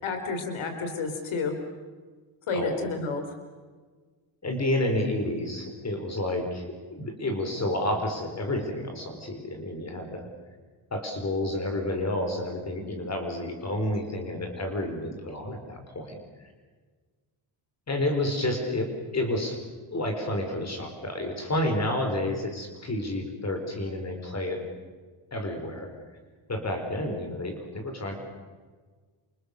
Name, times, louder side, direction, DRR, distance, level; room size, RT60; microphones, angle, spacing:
voice 1, 0.0-1.5 2.5-3.2, left 4 dB, 90° left, 6 dB, 4.3 m, -30 dB
voice 2, 4.4-10.3 10.9-16.2 17.9-18.9 19.1-19.6 19.9-24.6 25.3-25.9 26.5-28.2, left 1 dB, 35° left, 4 dB, 4.7 m, -30 dB
29.0 x 28.5 x 6.8 m, 1.4 s
wide cardioid pair, 150°, 47 cm